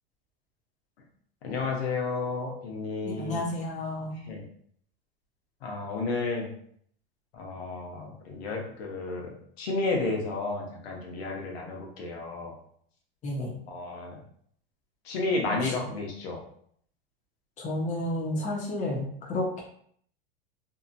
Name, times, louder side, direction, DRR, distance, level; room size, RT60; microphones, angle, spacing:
voice 1, 1.4-3.4 4.2-4.4 5.6-6.5 7.3-12.5 13.7-14.2 15.0-16.4, left 3 dB, 85° left, 0 dB, 0.9 m, -32 dB
voice 2, 3.0-4.2 13.2-13.6 15.5-15.7 17.6-19.6, left 1 dB, 25° left, -2 dB, 0.7 m, -31 dB
2.8 x 2.5 x 2.5 m, 0.63 s
supercardioid pair, 135°, 30 cm